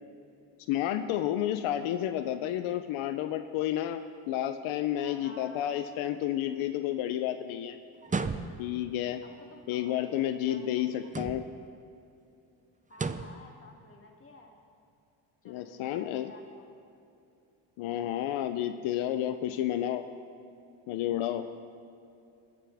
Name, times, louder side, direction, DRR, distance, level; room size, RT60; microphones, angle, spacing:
voice 1, 0.7-7.8 8.6-9.2 9.7-11.4 15.5-16.3 17.8-20.0 20.9-21.5, left 12 dB, 85° left, 9 dB, 0.7 m, -31 dB
voice 2, 4.9-5.9 9.2-11.2 12.9-14.6 15.4-16.7 21.3-21.5, left 2 dB, 25° left, 0 dB, 2.5 m, -52 dB
sound 1, 8.0-8.8 11.0-11.7 12.9-13.4, right 4 dB, 15° right, 0.5 m, -34 dB
22.0 x 10.0 x 3.5 m, 2.6 s
cardioid pair, 85°, 47 cm